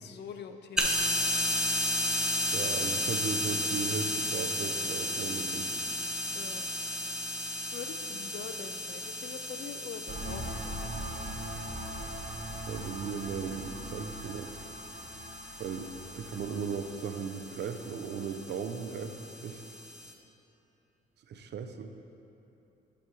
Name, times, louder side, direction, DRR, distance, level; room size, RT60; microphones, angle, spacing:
voice 1, 0.0-1.6 6.3-6.7 7.7-10.9, left 7 dB, 60° left, 8 dB, 0.5 m, -44 dB
sound 1, 0.8-20.1, left 1 dB, 5° right, 0.6 m, -34 dB
voice 2, 2.5-5.8 12.7-14.5 15.6-15.9 16.1-19.6 21.3-21.9, right 6 dB, 60° right, 7 dB, 0.5 m, -37 dB
sound 2, 10.1-19.6, right 1 dB, 40° right, 1.1 m, -42 dB
7.1 x 4.6 x 4.7 m, 2.9 s
cardioid pair, 90°, 20 cm